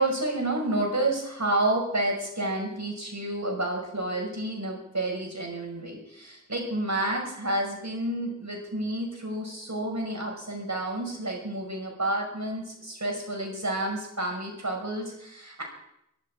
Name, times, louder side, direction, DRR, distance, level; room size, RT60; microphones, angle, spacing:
voice 1, 0.0-15.6, right 1 dB, 65° right, 1 dB, 5.4 m, -30 dB
23.5 x 11.5 x 4.7 m, 0.79 s
wide cardioid pair, 50°, 31 cm